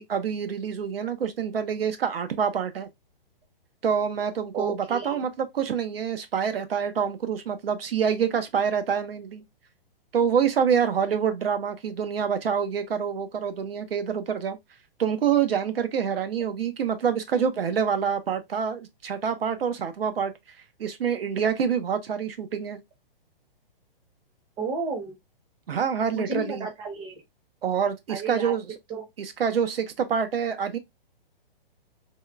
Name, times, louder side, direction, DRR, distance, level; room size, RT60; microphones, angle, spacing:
voice 1, 0.0-2.9 3.8-9.4 10.1-14.6 15.0-20.3 20.8-22.8 25.7-26.7 27.6-28.6 29.2-30.8, right 7 dB, 80° right, 0.7 m, -26 dB
voice 2, 4.5-5.2 24.6-25.1 26.1-27.2 28.1-28.5 28.9-29.0, right 3 dB, 15° right, 0.7 m, -32 dB
3.5 x 2.2 x 2.4 m
hypercardioid pair, 140°, 29 cm